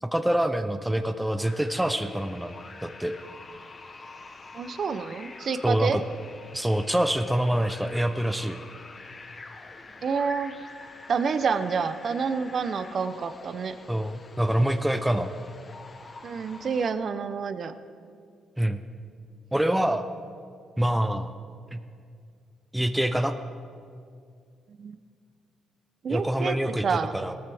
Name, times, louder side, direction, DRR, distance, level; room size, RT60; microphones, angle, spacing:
voice 1, 0.0-2.5 2.8-3.1 5.6-6.0 6.5-8.6 13.9-15.3 18.6-18.8 19.5-20.1 20.8-21.3 21.7-21.8 22.7-23.3 26.1-26.9 27.1-27.4, right 1 dB, 5° right, 8 dB, 0.6 m, -25 dB
sound 1, 1.4-16.9, left 3 dB, 35° left, 1.1 m, -46 dB
voice 2, 4.5-6.0 10.0-10.5 11.1-13.8 16.2-17.7 24.8-25.0 26.0-27.1, right 5 dB, 50° right, 11 dB, 0.6 m, -28 dB
18.0 x 13.5 x 3.5 m, 2.3 s
cardioid pair, 90°, 0 cm